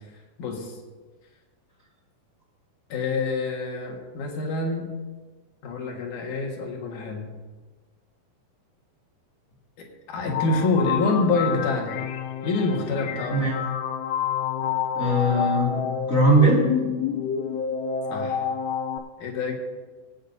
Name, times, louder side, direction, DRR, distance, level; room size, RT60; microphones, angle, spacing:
voice 1, 0.4-0.7 2.9-4.9 5.6-7.3 9.8-12.0 12.4-13.4 18.1-18.5 19.2-19.5, left 3 dB, 60° left, 0 dB, 2.5 m, -26 dB
sound 1, 10.3-19.0, left 7 dB, 80° left, 2.7 m, -28 dB
voice 2, 14.9-15.8 16.1-16.6, right 1 dB, 35° left, -4 dB, 1.4 m, -20 dB
25.0 x 8.5 x 2.7 m, 1.3 s
omnidirectional pair, 5.0 m